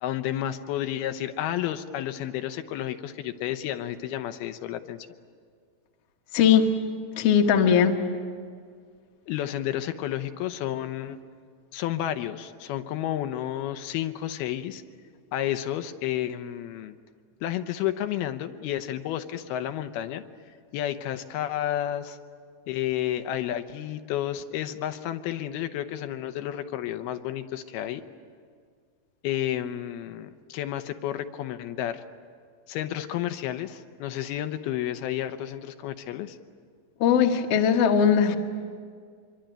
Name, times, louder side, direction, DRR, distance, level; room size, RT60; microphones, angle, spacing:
voice 1, 0.0-5.1 9.3-11.2 11.7-14.8 15.3-17.0 17.4-20.2 20.7-22.2 22.7-28.0 29.2-32.0 32.7-36.4, left 12 dB, 85° left, 8 dB, 2.8 m, -31 dB
voice 2, 6.3-6.7 7.2-8.0 37.0-38.4, left 7 dB, 55° left, 3 dB, 1.9 m, -19 dB
25.5 x 23.5 x 9.1 m, 2.1 s
omnidirectional pair, 4.4 m